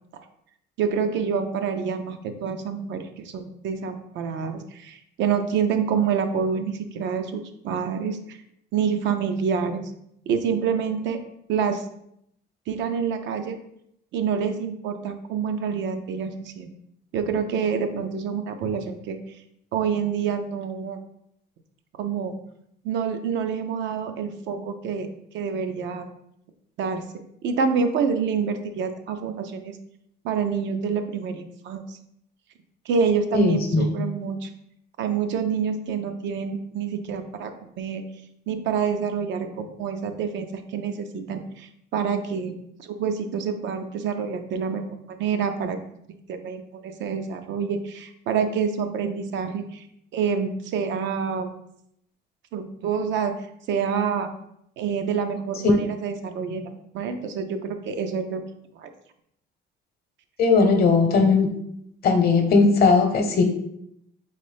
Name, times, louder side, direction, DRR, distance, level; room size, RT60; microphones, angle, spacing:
voice 1, 0.8-8.4 8.7-9.8 10.3-11.2 11.5-11.9 12.7-13.6 14.1-16.7 17.1-19.2 19.7-21.0 22.0-22.4 22.8-25.1 25.3-26.1 26.8-27.0 27.4-29.8 30.2-32.0 32.9-34.5 35.0-37.5 37.8-38.0 38.5-42.5 42.8-45.8 46.3-49.8 50.1-51.5 52.5-53.3 53.7-54.3 54.8-58.4 58.8-58.9, right 6 dB, 80° right, 7 dB, 0.6 m, -27 dB
voice 2, 33.3-33.9 60.4-61.5 62.0-63.4, left 4 dB, 60° left, 5 dB, 0.8 m, -18 dB
4.0 x 3.6 x 3.4 m, 0.74 s
cardioid pair, 120°, 18 cm